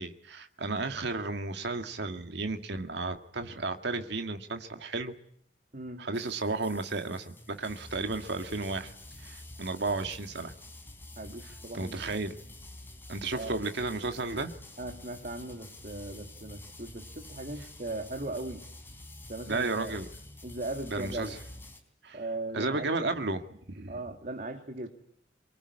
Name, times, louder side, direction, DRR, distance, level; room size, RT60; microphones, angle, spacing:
voice 1, 0.0-5.1 6.0-8.9 9.2-10.5 11.7-12.4 13.1-14.5 19.5-20.1 20.9-21.4 22.0-22.2 22.5-24.0, right 3 dB, 60° right, 6 dB, 2.0 m, -33 dB
voice 2, 5.7-6.1 11.2-12.2 13.3-13.6 14.8-18.6 19.3-19.9 20.4-21.4 22.1-23.2 23.9-24.9, right 2 dB, 45° right, 5 dB, 2.5 m, -38 dB
sound 1, 6.1-21.8, left 1 dB, 10° left, 4.0 m, -48 dB
24.5 x 22.5 x 9.8 m, 0.68 s
head